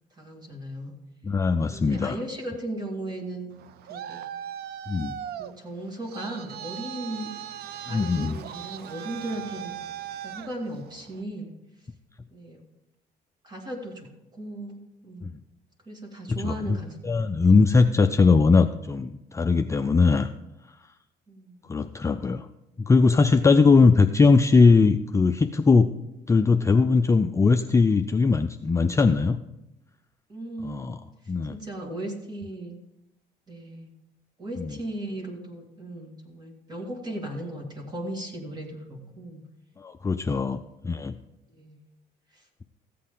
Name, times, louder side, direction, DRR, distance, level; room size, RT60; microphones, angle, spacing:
voice 1, 0.1-0.9 1.7-3.5 3.9-4.2 5.4-7.3 7.9-9.7 10.2-11.5 12.3-12.6 13.4-15.3 15.9-17.7 21.3-21.6 30.3-30.8 31.5-32.8 33.5-33.9 34.4-39.4 41.5-41.8 42.3-42.4, right 1 dB, 25° right, 2 dB, 2.2 m, -37 dB
voice 2, 1.2-2.2 4.9-5.2 7.9-8.4 15.2-15.3 16.3-16.8 17.0-20.3 21.7-22.5 22.9-25.9 26.3-29.4 30.6-31.0 31.3-31.6 34.6-34.7 39.8-41.1, left 4 dB, 15° left, 7 dB, 0.3 m, -20 dB
Traffic noise roadway noise, 3.5-11.2, right 10 dB, 70° right, 0.6 m, -39 dB
14.5 x 8.5 x 3.8 m, 0.93 s
cardioid pair, 110°, 17 cm